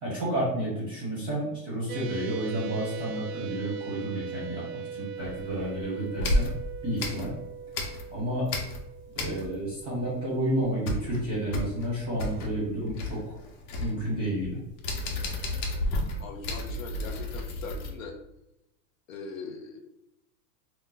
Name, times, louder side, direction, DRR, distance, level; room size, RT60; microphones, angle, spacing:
voice 1, 0.0-6.5 6.8-7.3 8.1-8.5 9.1-13.4 13.8-14.6, right 1 dB, 10° right, -7 dB, 0.7 m, -31 dB
sound 1, 1.9-10.6, right 7 dB, 85° right, 0.6 m, -40 dB
sound 2, 5.2-5.7 6.2-8.2 8.5-9.8 10.0-10.1 10.5-17.9, left 1 dB, 85° left, 1.0 m, -32 dB
voice 2, 16.2-18.2 19.1-19.8, left 4 dB, 55° left, 3 dB, 0.5 m, -40 dB
2.8 x 2.2 x 3.8 m, 0.87 s
supercardioid pair, 180°, 49 cm